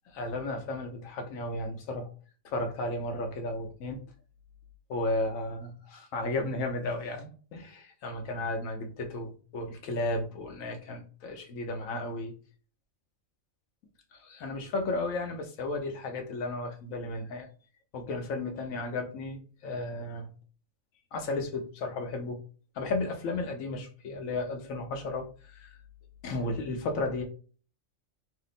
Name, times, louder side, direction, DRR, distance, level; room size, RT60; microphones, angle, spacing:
voice 1, 0.1-2.1 2.4-4.0 4.9-12.3 14.1-17.5 17.9-20.3 21.1-22.4 22.7-25.8 26.2-27.2, left 2 dB, 80° left, 4 dB, 1.1 m, -34 dB
2.8 x 2.0 x 4.0 m, 0.40 s
omnidirectional pair, 1.4 m